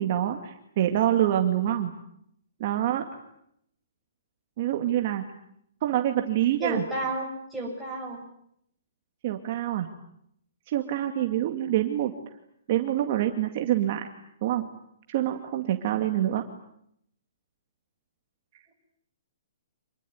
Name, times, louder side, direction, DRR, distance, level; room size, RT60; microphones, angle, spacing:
voice 1, 0.0-1.9 2.6-3.1 4.6-5.2 5.8-6.8 9.2-9.9 10.7-12.1 12.7-14.1 14.4-14.6 15.1-16.4, right 12 dB, 35° right, 4 dB, 2.2 m, -26 dB
voice 2, 6.6-8.2, right 2 dB, ahead, 0 dB, 7.4 m, -32 dB
27.5 x 21.0 x 9.6 m, 0.73 s
hypercardioid pair, 175°, 0 cm